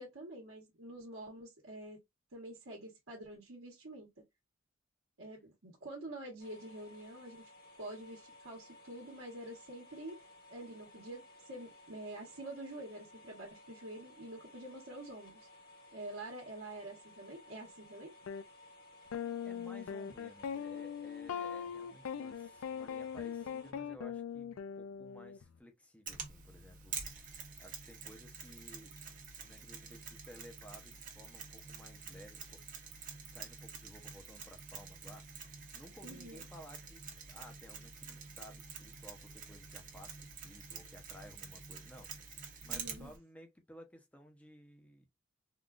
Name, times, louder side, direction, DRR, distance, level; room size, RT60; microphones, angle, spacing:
voice 1, 0.0-2.0 2.3-4.1 5.2-7.5 7.8-10.2 10.5-15.5 15.9-18.1 36.0-36.5 42.7-43.1, right 1 dB, 70° right, 1.1 m, -47 dB
sound 1, 6.4-23.7, left 2 dB, 50° left, 1.2 m, -58 dB
sound 2, 18.3-18.4 19.1-25.4, left 7 dB, 85° left, 0.4 m, -41 dB
voice 2, 19.4-27.0 27.6-28.9 29.4-32.6 33.3-45.1, equal, 5° left, 0.6 m, -56 dB
Mechanisms, 26.1-43.2, right 5 dB, 40° right, 0.9 m, -48 dB
3.7 x 2.4 x 2.3 m
head